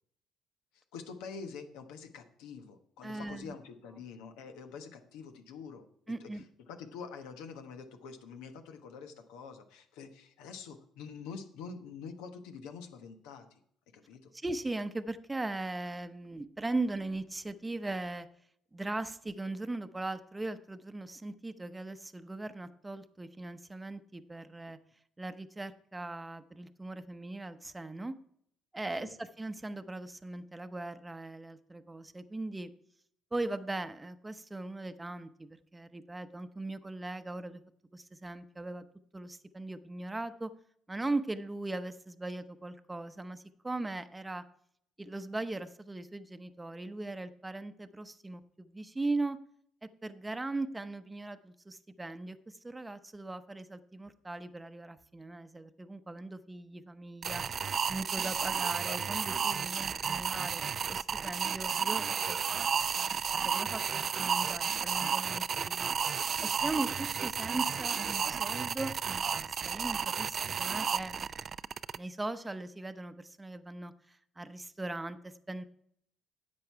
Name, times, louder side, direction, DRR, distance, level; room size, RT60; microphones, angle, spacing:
voice 1, 0.7-5.8 6.2-6.3 6.7-13.5 13.9-14.3 29.0-29.1 66.7-66.9, left 5 dB, 85° left, 6 dB, 1.2 m, -46 dB
voice 2, 3.0-3.5 6.1-6.4 14.3-18.3 18.7-24.8 25.2-28.1 28.7-32.7 33.3-37.6 37.9-38.8 39.1-40.5 40.9-44.4 45.0-49.4 49.8-57.4 57.9-62.4 62.7-63.1 63.4-66.2 66.4-71.2 71.9-75.6, right 2 dB, 15° right, 10 dB, 0.8 m, -39 dB
sound 1, 57.2-72.0, right 7 dB, 50° right, 0.4 m, -32 dB
10.5 x 7.7 x 4.6 m, 0.67 s
supercardioid pair, 65°, 0 cm